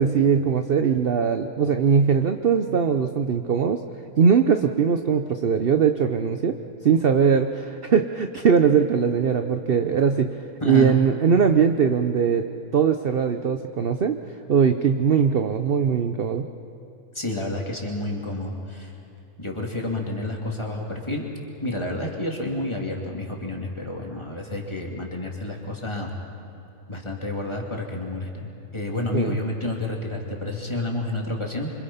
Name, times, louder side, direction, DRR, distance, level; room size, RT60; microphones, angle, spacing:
voice 1, 0.0-3.8 4.2-6.6 6.8-10.3 10.6-12.5 12.7-14.2 14.5-16.5 29.1-29.4, right 6 dB, 45° right, 7 dB, 0.8 m, -20 dB
voice 2, 10.6-10.9 17.1-18.9 19.4-21.3 21.6-26.1 26.9-31.7, left 2 dB, 15° left, 0 dB, 2.9 m, -29 dB
27.5 x 25.0 x 5.7 m, 2.9 s
omnidirectional pair, 1.7 m